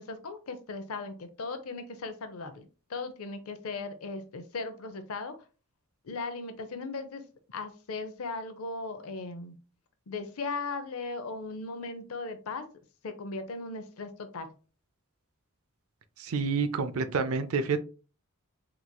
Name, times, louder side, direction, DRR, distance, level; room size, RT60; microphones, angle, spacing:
voice 1, 0.0-5.3 6.0-7.2 7.5-9.6 10.1-12.6 13.0-14.5, left 3 dB, 75° left, 9 dB, 0.6 m, -37 dB
voice 2, 16.2-17.8, right 4 dB, 70° right, 10 dB, 0.4 m, -28 dB
3.8 x 3.0 x 2.2 m, 0.35 s
head